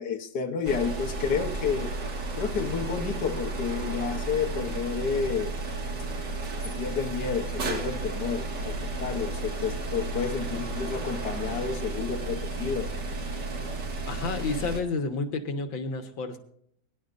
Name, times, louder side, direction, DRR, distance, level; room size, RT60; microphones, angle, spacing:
voice 1, 0.0-1.9 2.4-5.5 6.6-13.1, left 6 dB, 60° left, 3 dB, 1.6 m, -30 dB
sound 1, 0.6-14.8, right 2 dB, 60° right, 2.5 m, -33 dB
voice 2, 14.1-16.4, left 3 dB, 80° left, 6 dB, 2.1 m, -30 dB
22.5 x 11.0 x 2.6 m, 0.67 s
omnidirectional pair, 2.1 m